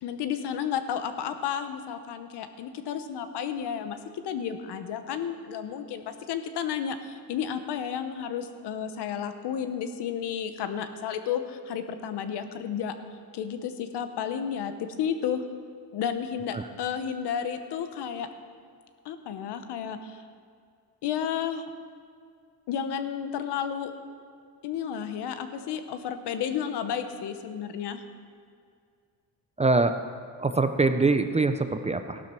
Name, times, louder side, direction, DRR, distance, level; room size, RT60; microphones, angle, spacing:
voice 1, 0.0-4.0 4.2-12.9 13.3-14.7 15.0-15.4 15.9-18.3 19.0-20.2 21.0-21.7 22.7-23.9 24.6-28.0, left 8 dB, 75° left, 9 dB, 1.1 m, -32 dB
voice 2, 29.6-29.9 30.4-32.2, right 3 dB, 15° right, 9 dB, 0.4 m, -23 dB
15.0 x 12.0 x 4.5 m, 2.2 s
cardioid pair, 135°, 41 cm